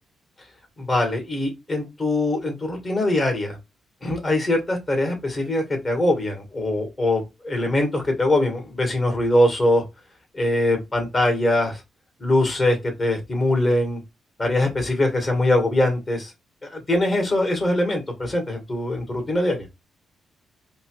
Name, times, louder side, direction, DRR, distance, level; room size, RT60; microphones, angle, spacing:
voice 1, 0.8-3.6 4.0-9.8 10.3-11.8 12.2-14.0 14.4-16.3 16.6-19.7, left 1 dB, 25° left, 1.6 m, -22 dB
4.9 x 2.3 x 3.1 m
cardioid pair, 125°, 0 cm